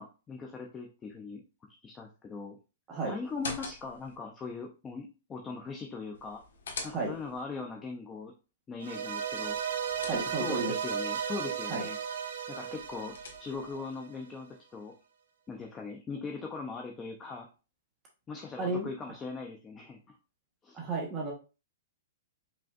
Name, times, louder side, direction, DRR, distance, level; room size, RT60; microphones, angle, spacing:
voice 1, 0.0-1.4 1.8-2.6 3.0-6.4 6.8-8.3 8.7-9.6 10.1-12.0 12.5-14.9 15.5-17.5 18.3-20.2 20.6-20.8, left 4 dB, 15° left, 2 dB, 0.4 m, -40 dB
sound 1, 3.2-4.2 6.1-7.4 9.4-10.7 12.6-13.8, left 4 dB, 85° left, 1.3 m, -44 dB
sound 2, 8.8-14.1, right 8 dB, 65° right, 0.8 m, -35 dB
voice 2, 10.0-10.7 11.7-11.8 18.6-18.9 20.7-21.3, right 3 dB, 15° right, -1 dB, 1.1 m, -33 dB
5.0 x 3.4 x 2.4 m, 0.32 s
hypercardioid pair, 170°, 0 cm